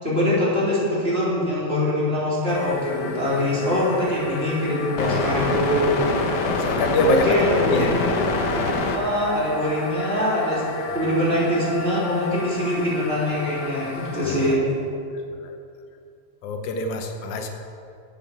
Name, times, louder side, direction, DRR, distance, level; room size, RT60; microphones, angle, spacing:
voice 1, 0.0-6.1 7.2-7.9 8.3-8.5 8.9-10.6 10.9-14.6, left 1 dB, 20° right, -8 dB, 3.6 m, -23 dB
sound 1, 2.5-14.6, left 3 dB, 60° left, 1.0 m, -28 dB
voice 2, 5.0-5.3 6.4-8.6 14.2-14.6 15.3-15.6 16.4-17.5, left 1 dB, 85° left, 4 dB, 2.5 m, -25 dB
11.5 x 8.6 x 7.3 m, 2.4 s
omnidirectional pair, 3.3 m